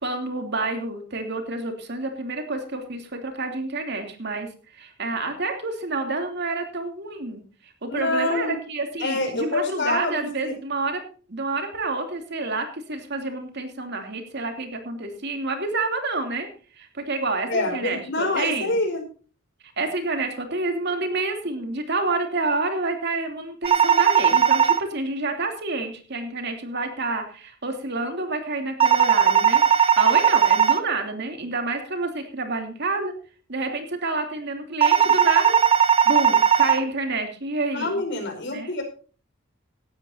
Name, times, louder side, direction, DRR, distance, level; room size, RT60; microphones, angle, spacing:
voice 1, 0.0-7.4 7.8-11.0 11.3-16.5 16.8-18.8 19.6-33.1 33.5-35.6 36.0-38.0 38.4-38.7, right 3 dB, 55° right, 5 dB, 2.9 m, -28 dB
voice 2, 7.9-8.5 9.0-10.5 17.5-19.0 37.7-38.8, left 2 dB, 60° left, 5 dB, 5.0 m, -26 dB
sound 1, 23.6-24.8 28.8-30.8 34.8-36.8, right 8 dB, 30° right, 1.0 m, -17 dB
18.0 x 12.5 x 2.7 m, 0.38 s
head